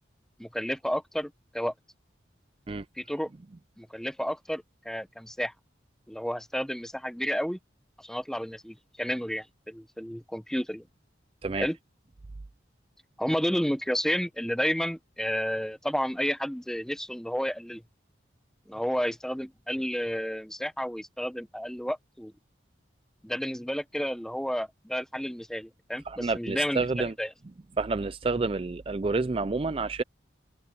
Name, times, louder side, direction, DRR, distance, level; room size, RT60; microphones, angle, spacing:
voice 1, 0.4-1.7 3.0-3.3 3.8-5.5 6.1-7.6 8.0-10.8 11.6-11.8 13.2-17.8 18.7-22.3 23.2-27.3, equal, 5° left, 0.9 m, -31 dB
voice 2, 26.1-27.1 27.8-30.0, right 3 dB, 30° right, 0.4 m, -29 dB
head